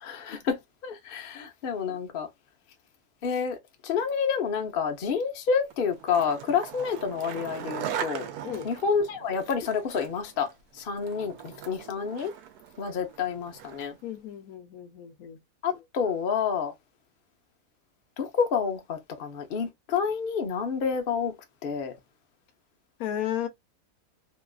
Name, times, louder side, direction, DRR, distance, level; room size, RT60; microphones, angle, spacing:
voice 1, 0.0-2.3 3.2-3.6 3.8-8.3 8.6-10.5 10.8-12.3 12.8-14.0 15.6-16.7 18.2-21.3 21.6-21.9, left 6 dB, 50° left, 0.7 m, -29 dB
Skateboard, 5.7-14.0, right 9 dB, 80° right, 1.1 m, -40 dB
voice 2, 14.0-15.4 23.0-23.5, left 10 dB, 70° left, 1.0 m, -34 dB
3.0 x 2.3 x 2.3 m
omnidirectional pair, 1.6 m